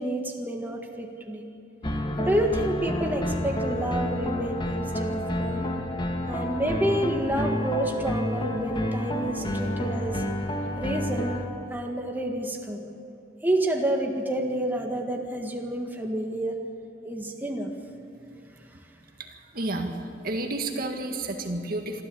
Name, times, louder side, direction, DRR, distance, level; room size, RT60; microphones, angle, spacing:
voice 1, 0.0-1.5 2.2-5.7 6.3-10.2 10.8-11.4 11.7-12.9 13.4-16.6 17.1-17.7, right 1 dB, 10° right, 1 dB, 1.7 m, -29 dB
sound 1, 1.8-11.4, left 1 dB, 30° left, 2.0 m, -29 dB
voice 2, 19.2-19.9 20.2-22.0, right 2 dB, 55° right, 4 dB, 1.9 m, -31 dB
25.0 x 13.5 x 8.5 m, 2.8 s
head